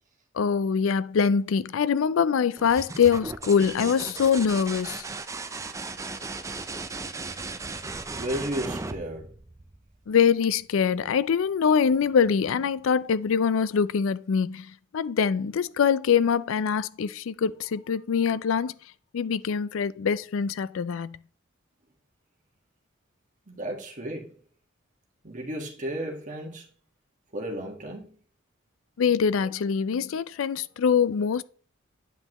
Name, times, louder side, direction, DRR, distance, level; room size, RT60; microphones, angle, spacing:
voice 1, 0.3-5.0 10.1-18.7 19.1-21.2 29.0-31.4, left 6 dB, 75° left, 0.4 m, -24 dB
sound 1, 2.6-10.2 11.9-12.5, right 3 dB, 15° right, 0.4 m, -37 dB
voice 2, 8.1-9.3 23.5-24.4 25.2-26.7 27.3-28.1, right 1 dB, 40° right, 1.5 m, -33 dB
9.2 x 5.7 x 3.0 m
head